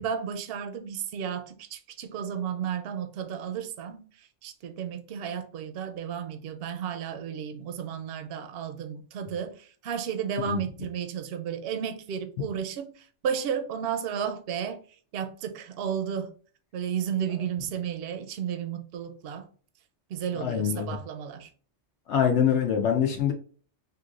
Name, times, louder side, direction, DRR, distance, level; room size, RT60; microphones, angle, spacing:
voice 1, 0.0-4.0 4.4-9.6 9.8-12.9 13.2-14.8 15.1-16.3 16.7-19.5 20.1-21.5, right 8 dB, 65° right, 0.7 m, -33 dB
voice 2, 20.3-21.0 22.1-23.3, left 8 dB, 70° left, 0.8 m, -24 dB
3.8 x 2.5 x 2.4 m
omnidirectional pair, 1.2 m